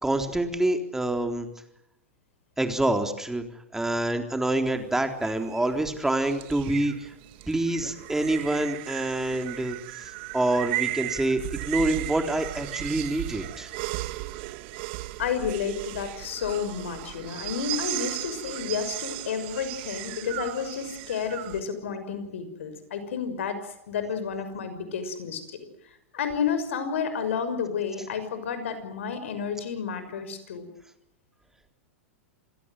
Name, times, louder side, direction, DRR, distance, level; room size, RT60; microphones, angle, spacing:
voice 1, 0.0-1.5 2.6-3.4 3.7-7.1 7.5-13.7, right 1 dB, 5° right, 6 dB, 3.8 m, -27 dB
sound 1, 4.6-21.6, right 19 dB, 55° right, 1.5 m, -36 dB
voice 2, 15.2-23.6 23.9-25.4 26.1-30.7, left 6 dB, 75° left, 10 dB, 6.1 m, -31 dB
28.0 x 17.5 x 9.4 m, 0.82 s
hypercardioid pair, 110°, 7 cm